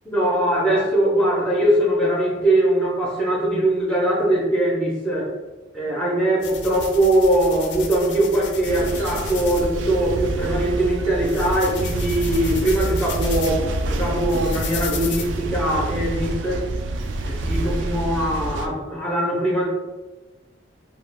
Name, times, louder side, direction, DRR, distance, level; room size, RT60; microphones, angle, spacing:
voice 1, 0.1-5.3 5.7-16.6 17.2-19.7, right 1 dB, 5° left, -3 dB, 0.5 m, -21 dB
sound 1, 6.4-15.2, left 5 dB, 65° left, 0.4 m, -35 dB
sound 2, 8.7-18.7, right 1 dB, 75° right, 0.4 m, -27 dB
2.8 x 2.2 x 3.3 m, 1.1 s
head